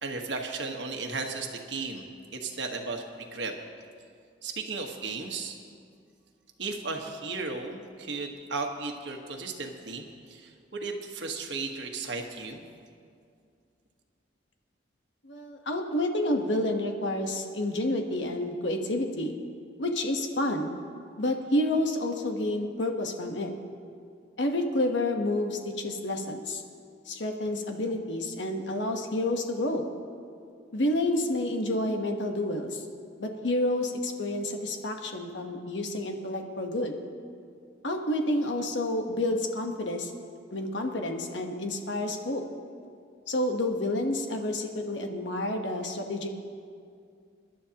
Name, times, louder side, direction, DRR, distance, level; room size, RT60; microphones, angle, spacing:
voice 1, 0.0-3.5 4.4-5.5 6.6-12.6, right 3 dB, 70° right, 3 dB, 1.4 m, -35 dB
voice 2, 15.2-19.3 19.8-20.7 21.2-23.5 24.4-26.6 27.1-29.8 30.7-32.8 33.2-37.0 37.8-40.1 40.5-42.4 43.3-46.3, left 1 dB, 75° left, 4 dB, 1.2 m, -29 dB
27.0 x 11.5 x 2.9 m, 2.3 s
head